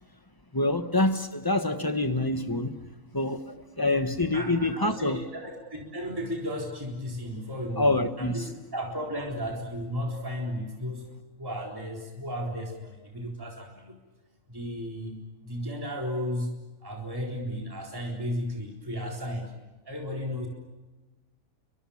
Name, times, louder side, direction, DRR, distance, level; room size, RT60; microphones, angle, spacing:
voice 1, 0.5-2.8 3.1-5.2 7.8-8.4, left 2 dB, 15° left, 1.2 m, -26 dB
voice 2, 4.3-11.1 11.4-14.0 14.5-15.2 15.4-16.5 16.8-19.5 19.8-20.5, equal, 15° right, 4.1 m, -34 dB
30.0 x 25.0 x 7.2 m
omnidirectional pair, 1.5 m